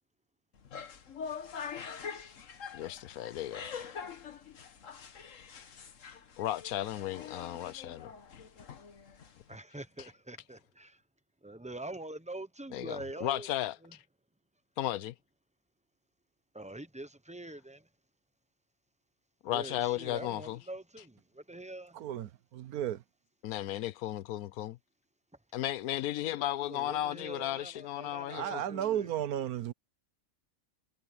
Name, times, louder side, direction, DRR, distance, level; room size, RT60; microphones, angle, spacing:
sound 1, 0.5-9.6, left 6 dB, 60° left, 1.6 m, -45 dB
voice 1, 2.7-3.7 6.4-8.4 10.0-10.1 12.7-14.0 14.8-15.1 19.4-20.6 23.4-24.8 25.5-28.6, left 13 dB, 80° left, 1.1 m, -35 dB
voice 2, 9.5-11.0 11.4-13.5 13.8-13.9 16.5-17.9 19.5-22.0 26.2-26.4 26.7-29.1, right 2 dB, 5° right, 0.6 m, -45 dB
voice 3, 22.0-23.0 28.3-29.7, right 11 dB, 85° right, 1.3 m, -34 dB
omnidirectional pair, 1.5 m